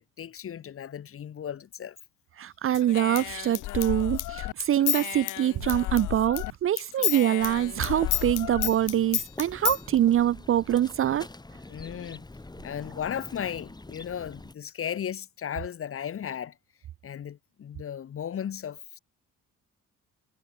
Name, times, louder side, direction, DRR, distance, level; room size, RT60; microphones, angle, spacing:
voice 1, 0.0-2.0 11.7-12.3 12.6-16.6 17.0-19.0, left 9 dB, 45° left, 1.1 m, -35 dB
voice 2, 2.4-11.3, right 11 dB, 45° right, 0.4 m, -25 dB
Human voice / Scissors, 2.7-6.5 6.8-9.8, left 16 dB, 85° left, 1.7 m, -31 dB
sound 1, 3.1-5.0 5.3-5.4 5.7-6.2 6.6-8.7, right 11 dB, 70° right, 6.5 m, -58 dB
sound 2, 7.4-14.5, left 2 dB, 15° left, 2.5 m, -45 dB
cardioid pair, 90°, 30 cm